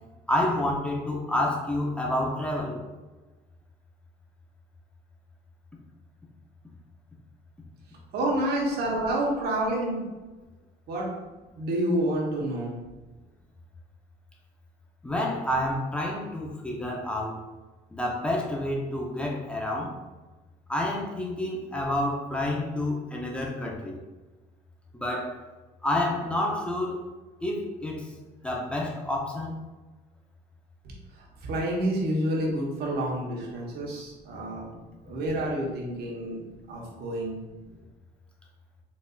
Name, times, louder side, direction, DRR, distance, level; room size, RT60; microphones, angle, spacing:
voice 1, 0.3-2.8 15.0-17.4 17.9-20.0 20.7-24.0 24.9-25.4 25.8-27.0 27.4-28.1 28.4-29.6, left 1 dB, 5° left, -1 dB, 0.6 m, -29 dB
voice 2, 8.1-10.0 10.9-11.1 11.6-12.7 31.4-34.7 35.0-36.4 36.7-37.4, right 1 dB, 70° right, -3 dB, 1.1 m, -28 dB
4.0 x 2.6 x 2.4 m, 1.2 s
cardioid pair, 110°, 17 cm